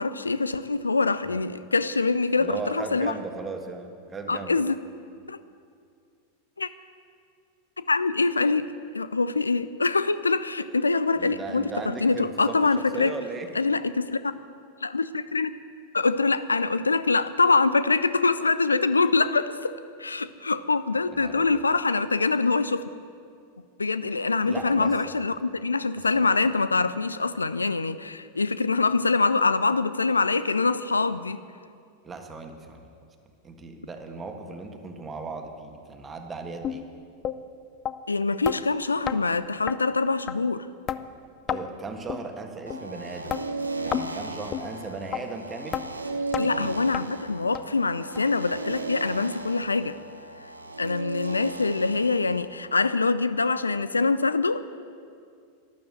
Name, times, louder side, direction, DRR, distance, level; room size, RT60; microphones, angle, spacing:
voice 1, 0.0-3.1 4.3-4.8 5.3-5.4 6.6-6.7 7.8-11.7 12.0-13.1 13.6-14.3 14.8-15.5 15.9-19.7 20.0-23.0 23.8-31.4 38.1-40.7 46.4-50.0 50.8-54.6, left 3 dB, 80° left, 15 dB, 0.4 m, -24 dB
voice 2, 2.4-4.6 11.2-13.5 21.1-21.6 24.4-25.1 26.0-26.3 32.0-32.9 33.4-36.8 41.5-43.3 43.8-45.8 46.3-46.8, right 4 dB, 20° right, 4 dB, 1.6 m, -37 dB
sound 1, 36.6-36.8 37.2-37.4 37.9-38.0 38.5-38.6 39.1-39.2 39.7-39.8 40.3-40.4 40.9-41.0 41.5-41.6 42.1-42.2 42.7-42.8 43.3-43.4 43.9-44.1 44.5-44.7 45.1-45.2 45.7-45.9 46.3-46.5 46.9-47.1 47.5-47.6 48.2-48.3 48.8-48.9 49.4-49.5, left 10 dB, 30° left, 0.5 m, -30 dB
sound 2, 42.7-52.5, right 3 dB, 80° right, 0.9 m, -36 dB
12.5 x 11.0 x 7.7 m, 2.3 s
figure-of-eight pair, 90°, 0 cm